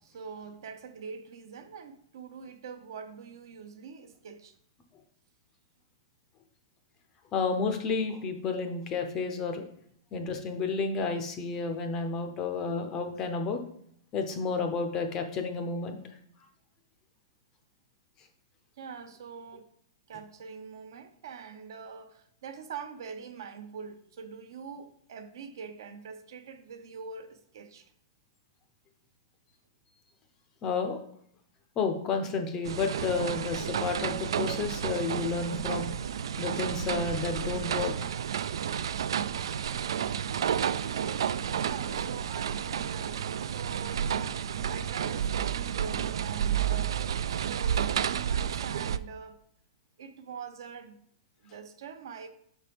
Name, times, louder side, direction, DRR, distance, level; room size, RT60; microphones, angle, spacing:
voice 1, 0.0-4.5 18.8-19.7 20.1-27.9 41.6-44.1 44.7-49.4 50.0-51.0 51.4-52.3, right 6 dB, 55° right, 0.7 m, -44 dB
voice 2, 7.3-9.6 10.1-13.6 14.1-16.0 30.6-31.0 31.8-35.9 36.4-37.9, left 4 dB, 15° left, 0.5 m, -31 dB
sound 1, 32.7-49.0, right 8 dB, 75° right, 0.3 m, -31 dB
6.0 x 4.5 x 5.1 m
hypercardioid pair, 180°, 3 cm